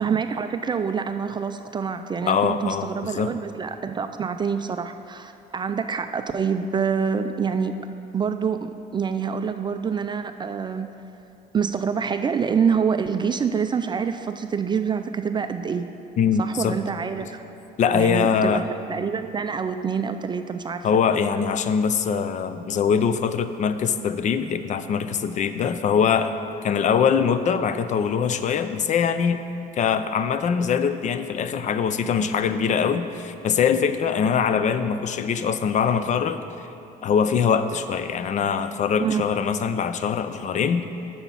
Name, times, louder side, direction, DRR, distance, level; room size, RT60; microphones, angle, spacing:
voice 1, 0.0-7.8 8.1-10.9 11.5-15.9 16.4-17.5 17.9-20.9 39.0-39.2, right 6 dB, 25° right, 8 dB, 0.3 m, -26 dB
voice 2, 2.3-3.4 16.2-16.8 17.2-17.3 17.8-18.6 20.8-26.3 26.6-29.4 29.7-36.4 37.0-40.8, left 7 dB, 45° left, 11 dB, 0.5 m, -23 dB
7.0 x 5.9 x 7.2 m, 2.8 s
cardioid pair, 110°, 17 cm